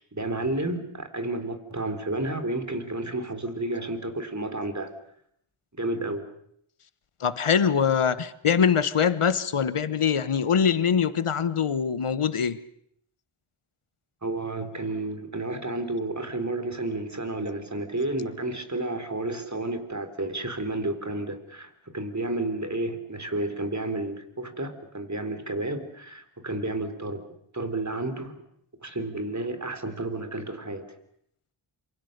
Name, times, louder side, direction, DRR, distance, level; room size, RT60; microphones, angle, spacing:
voice 1, 0.1-4.9 5.7-6.3 14.2-27.2 27.5-28.3 28.8-30.9, right 2 dB, 35° right, 9 dB, 3.7 m, -31 dB
voice 2, 7.2-12.6, left 7 dB, 80° left, 15 dB, 1.2 m, -23 dB
27.0 x 24.5 x 6.7 m, 0.70 s
wide cardioid pair, 40°, 50 cm